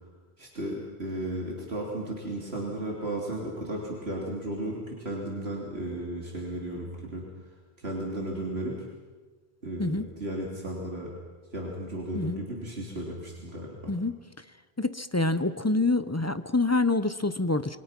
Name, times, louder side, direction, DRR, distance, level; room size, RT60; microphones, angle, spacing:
voice 1, 0.4-7.2 7.8-8.9 9.6-11.1 11.5-13.9, right 1 dB, 75° right, -2 dB, 3.5 m, -34 dB
voice 2, 13.9-14.2 14.8-17.8, left 2 dB, 20° left, 12 dB, 0.6 m, -26 dB
28.0 x 22.5 x 6.0 m, 1.3 s
omnidirectional pair, 1.1 m